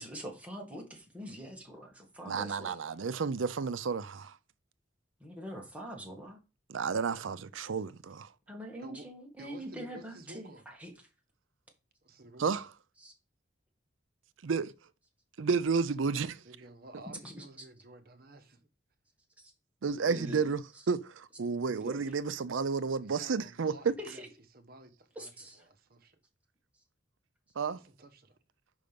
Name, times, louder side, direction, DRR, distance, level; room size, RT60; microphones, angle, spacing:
voice 1, 0.0-2.8 5.2-6.4 8.5-10.9 13.0-13.1 17.2-17.7 19.4-19.5 20.1-20.4 21.7-22.2 24.0-24.3 25.2-25.7, equal, 5° right, 1.9 m, -44 dB
voice 2, 2.3-4.4 6.7-8.3 12.4-12.7 14.4-14.7 15.4-16.4 19.8-20.6 20.9-23.9 27.6-27.8, right 5 dB, 85° right, 0.5 m, -31 dB
voice 3, 9.4-10.6 12.0-12.7 16.4-18.6 23.0-24.3 24.5-25.3 25.6-26.2 27.7-28.4, right 2 dB, 50° right, 1.1 m, -52 dB
5.6 x 5.3 x 5.2 m
head